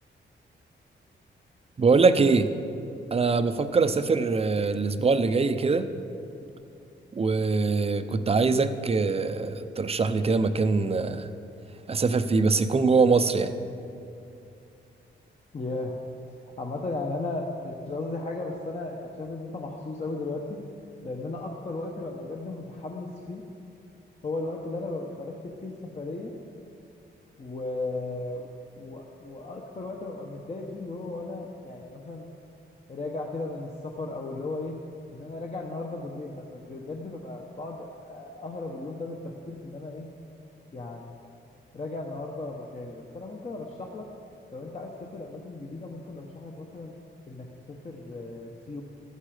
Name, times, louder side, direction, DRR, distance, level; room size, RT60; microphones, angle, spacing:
voice 1, 1.8-2.5 3.1-5.9 7.1-11.3 11.9-13.5, right 4 dB, 30° right, 10 dB, 0.6 m, -23 dB
voice 2, 15.5-15.9 16.4-20.6 21.0-23.4 24.2-26.3 27.4-28.5 28.8-32.2 32.9-34.8 35.1-40.1 40.7-41.2 41.7-44.1 44.5-46.9 47.3-48.8, left 2 dB, 35° left, 0 dB, 1.0 m, -36 dB
15.0 x 14.0 x 5.0 m, 2.6 s
wide cardioid pair, 125°, 20 cm